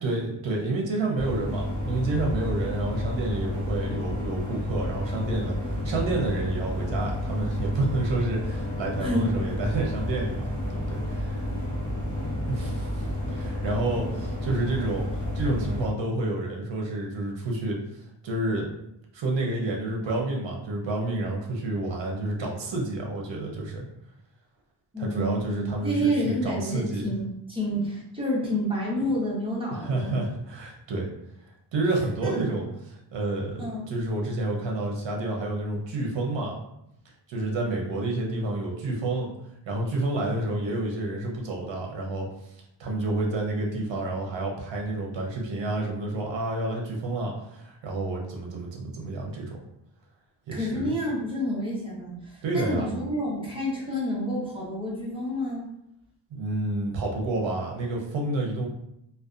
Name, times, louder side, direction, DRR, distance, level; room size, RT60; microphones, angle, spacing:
voice 1, 0.0-11.4 12.5-15.1 15.3-17.8 18.2-18.7 19.1-23.8 25.0-27.1 29.7-31.0 31.7-36.6 37.3-39.3 39.7-42.3 42.8-49.6 50.5-50.9 52.4-52.9 56.3-58.7, right 2 dB, 70° right, 0 dB, 0.7 m, -29 dB
sound 1, 1.2-15.9, left 1 dB, 40° left, 0.7 m, -31 dB
voice 2, 9.0-9.3 24.9-30.2 32.2-32.4 33.6-33.9 50.5-55.6, equal, 10° right, -6 dB, 0.7 m, -29 dB
2.5 x 2.2 x 2.4 m, 0.80 s
wide cardioid pair, 170°, 46 cm